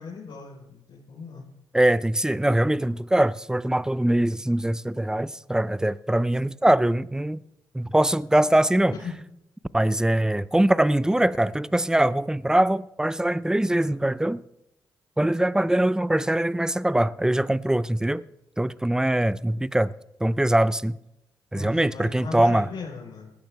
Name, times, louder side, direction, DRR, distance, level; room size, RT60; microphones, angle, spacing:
voice 1, 0.0-1.4 8.9-9.1 21.5-23.3, left 5 dB, 65° left, 4.3 m, -38 dB
voice 2, 1.7-7.4 7.7-8.9 9.7-14.4 15.2-18.2 18.6-19.9 20.2-21.0 21.5-22.7, right 1 dB, 5° right, 0.6 m, -22 dB
19.5 x 14.0 x 3.5 m
hypercardioid pair, 45°, 10 cm